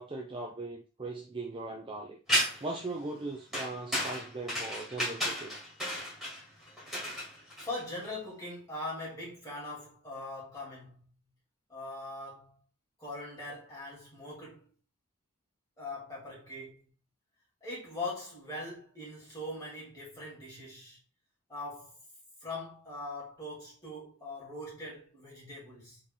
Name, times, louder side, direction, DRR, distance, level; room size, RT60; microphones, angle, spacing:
voice 1, 0.0-5.6, right 2 dB, 25° right, 0.5 m, -39 dB
sound 1, 2.3-2.8 3.5-8.0, equal, ahead, 2.1 m, -33 dB
voice 2, 7.6-11.1 11.7-12.6 13.0-14.7 15.8-16.9 17.6-21.0 21.5-22.0 22.4-26.0, left 2 dB, 15° left, 2.7 m, -41 dB
4.2 x 3.4 x 3.6 m
head